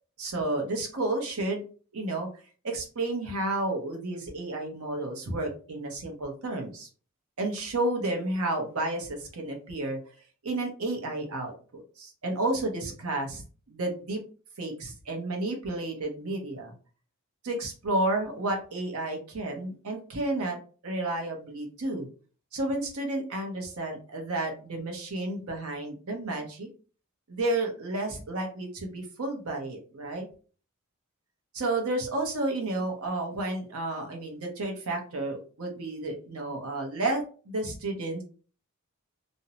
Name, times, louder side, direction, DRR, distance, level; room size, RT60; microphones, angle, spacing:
voice 1, 0.2-1.6 1.9-2.3 2.6-6.9 7.4-10.0 10.4-13.4 13.7-14.2 14.6-16.7 17.4-20.6 20.8-22.1 22.5-26.7 27.3-30.2 31.5-38.2, right 2 dB, 80° right, 2 dB, 0.7 m, -31 dB
2.6 x 2.0 x 2.7 m, 0.39 s
head